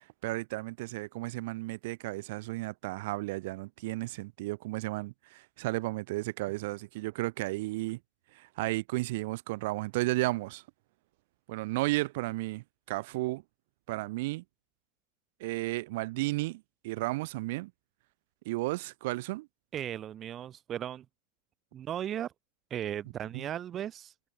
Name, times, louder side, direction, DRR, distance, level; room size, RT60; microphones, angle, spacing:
voice 1, 0.0-8.0 8.3-10.6 11.5-13.4 13.9-14.4 15.4-17.7 18.4-19.5 23.3-23.5, right 21 dB, 70° right, 0.9 m, -33 dB
voice 2, 19.7-21.0 21.7-22.3 22.7-24.1, right 10 dB, 25° right, 0.6 m, -36 dB
supercardioid pair, 160°, 0 cm